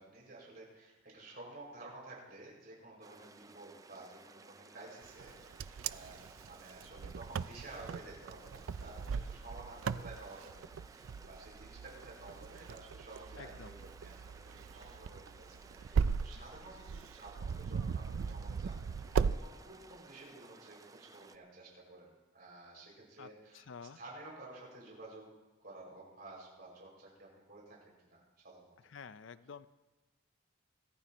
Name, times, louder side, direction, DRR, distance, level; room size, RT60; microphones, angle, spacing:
voice 1, 0.0-22.1 22.3-23.6 23.9-28.7, right 2 dB, 50° right, -3 dB, 6.0 m, -52 dB
sound 1, 3.0-21.4, right 3 dB, 15° right, 0.4 m, -58 dB
Wind, 5.2-19.4, right 6 dB, 85° right, 0.4 m, -38 dB
voice 2, 13.4-13.8 23.2-24.0 28.8-29.7, left 6 dB, 65° left, 15 dB, 0.5 m, -50 dB
24.5 x 14.5 x 3.0 m, 1.1 s
head